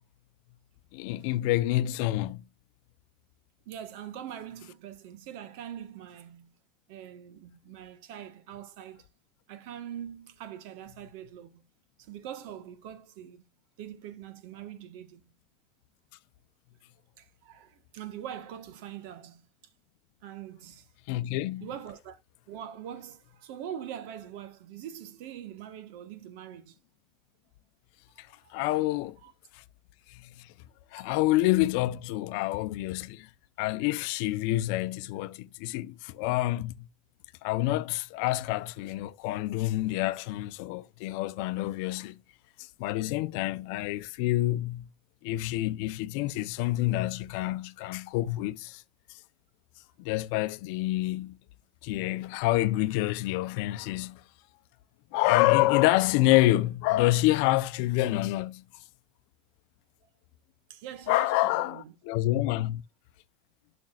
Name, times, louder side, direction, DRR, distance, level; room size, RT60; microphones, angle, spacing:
voice 1, 0.9-2.4 21.1-21.7 28.2-28.3 28.5-29.2 29.5-29.6 30.1-30.5 30.9-33.3 33.6-36.9 37.4-42.2 42.6-44.9 45.2-48.8 50.0-51.4 51.8-54.2 55.1-58.6 61.1-62.8, left 17 dB, 65° left, 0.7 m, -27 dB
voice 2, 3.6-6.5 6.9-9.1 9.5-11.6 12.0-13.4 13.8-15.2 17.2-19.4 20.2-20.9 21.6-22.2 22.5-26.8 28.1-28.7 29.2-29.3 60.7-61.9, right 10 dB, 65° right, 1.4 m, -43 dB
12.0 x 6.0 x 2.4 m
supercardioid pair, 155°, 0 cm